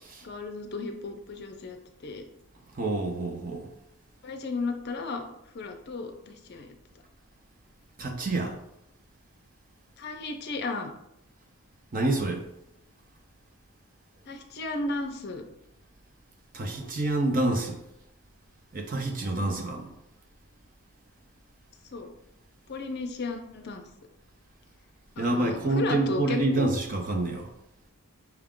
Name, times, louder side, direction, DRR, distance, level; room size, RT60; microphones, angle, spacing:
voice 1, 0.2-2.2 4.2-5.2 5.5-6.7 10.0-10.9 14.3-15.4 19.4-19.5 21.9-22.1 22.7-23.8 25.2-26.7, left 3 dB, 45° left, 5 dB, 0.5 m, -34 dB
voice 2, 2.7-3.7 8.0-8.6 11.9-12.4 16.5-17.8 18.7-19.9 25.2-27.5, right 2 dB, 40° right, 3 dB, 0.6 m, -27 dB
5.8 x 2.4 x 3.6 m, 0.82 s
head